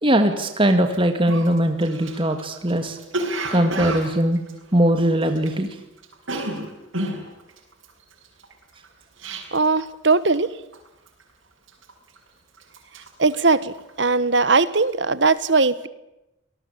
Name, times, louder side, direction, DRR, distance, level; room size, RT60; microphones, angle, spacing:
voice 1, 0.0-3.0 3.5-4.4 4.7-5.7 6.3-6.4, right 1 dB, 25° right, 6 dB, 2.1 m, -20 dB
Cough, 0.9-1.0 1.3-5.7 6.0-9.8 10.1-10.4 10.7-11.2 11.7-12.3 12.6-14.2 14.6-14.9, right 1 dB, 80° right, 6.7 m, -31 dB
voice 2, 9.5-10.5 13.2-15.9, right 3 dB, 60° right, 16 dB, 1.3 m, -19 dB
27.0 x 19.5 x 8.5 m, 0.92 s
head